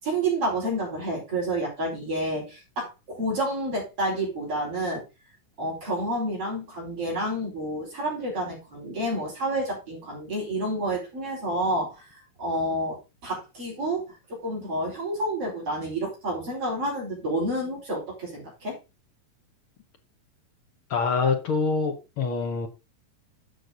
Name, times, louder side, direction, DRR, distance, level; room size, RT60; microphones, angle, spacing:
voice 1, 0.0-5.0 5.6-18.8, right 1 dB, 45° right, 5.4 m, -29 dB
voice 2, 20.9-22.7, left 4 dB, 65° left, 1.4 m, -25 dB
11.0 x 6.7 x 3.9 m
omnidirectional pair, 3.8 m